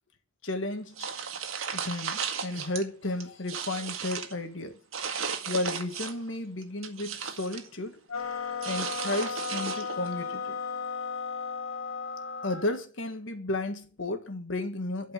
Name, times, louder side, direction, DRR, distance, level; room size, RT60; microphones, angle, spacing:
voice 1, 0.4-1.1 1.7-4.8 5.5-8.0 8.6-10.6 12.4-15.1, left 2 dB, 70° left, 1.8 m, -33 dB
sound 1, 1.0-2.8 3.2-4.3 4.9-6.3 6.6-7.7 8.6-10.1, right 6 dB, 85° right, 1.8 m, -35 dB
sound 2, 8.1-12.7, left 5 dB, 85° left, 1.7 m, -35 dB
12.0 x 5.4 x 8.4 m
head